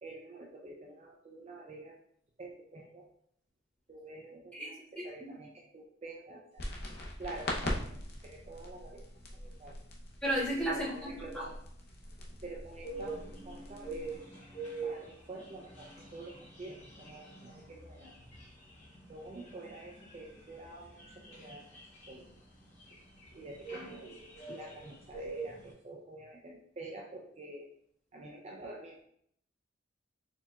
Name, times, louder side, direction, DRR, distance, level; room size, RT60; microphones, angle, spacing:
voice 1, 0.0-2.0 2.4-3.1 3.9-6.8 7.2-7.8 8.2-9.0 9.3-9.8 10.7-11.6 12.4-14.3 14.8-18.1 19.1-21.7 22.1-22.3 23.3-24.2 24.5-27.7 28.1-29.0, right 2 dB, 30° right, -1 dB, 0.4 m, -48 dB
voice 2, 4.5-5.3 10.2-11.4, right 1 dB, 5° left, -10 dB, 1.5 m, -34 dB
sound 1, 6.6-14.2, left 1 dB, 50° left, 0.7 m, -42 dB
sound 2, 12.8-25.7, right 3 dB, 35° left, 1.2 m, -45 dB
4.4 x 3.5 x 2.3 m, 0.68 s
head